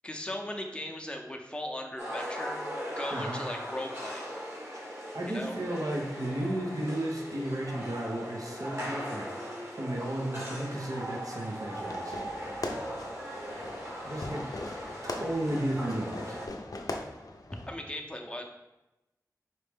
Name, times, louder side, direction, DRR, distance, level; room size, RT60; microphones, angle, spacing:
voice 1, 0.0-2.6 3.0-4.2 5.3-5.6 17.7-18.4, left 1 dB, 15° left, 2 dB, 0.6 m, -38 dB
sound 1, 2.0-16.5, equal, 45° right, 1.4 m, -39 dB
voice 2, 5.1-9.3 9.7-12.1 14.0-14.4 15.0-16.4, right 1 dB, 60° right, -1 dB, 0.8 m, -34 dB
Fireworks, 11.7-17.7, left 2 dB, 65° left, 0.5 m, -40 dB
4.3 x 3.1 x 3.5 m, 0.97 s
wide cardioid pair, 45°, 7 cm